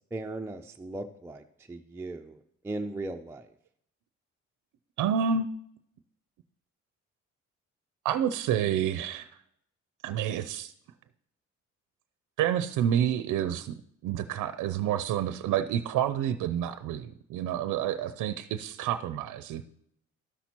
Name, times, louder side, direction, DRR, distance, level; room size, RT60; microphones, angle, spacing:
voice 1, 0.1-3.5, right 2 dB, 10° right, 4 dB, 0.4 m, -38 dB
voice 2, 5.0-5.4 8.0-9.3 10.0-10.7 12.4-13.7 14.0-19.6, right 9 dB, 80° right, 11 dB, 0.5 m, -29 dB
12.5 x 5.9 x 2.9 m, 0.71 s
cardioid pair, 90°, 30 cm